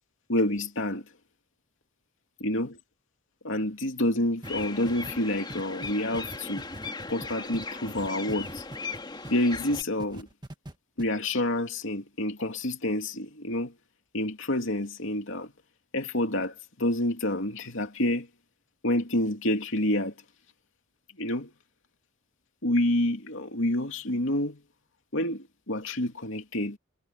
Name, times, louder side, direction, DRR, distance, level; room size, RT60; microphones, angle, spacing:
voice 1, 0.3-1.0 2.4-2.8 3.4-6.6 7.1-8.6 9.3-10.3 11.0-13.7 14.1-15.5 15.9-18.3 18.8-20.1 21.2-21.5 22.6-24.6 25.1-26.8, left 1 dB, 65° left, 3.1 m, -28 dB
sound 1, 4.4-9.8, left 3 dB, 20° left, 3.1 m, -38 dB
sound 2, 4.4-9.4 9.7-10.7 11.0-11.1, right 1 dB, 20° right, 1.7 m, -43 dB
head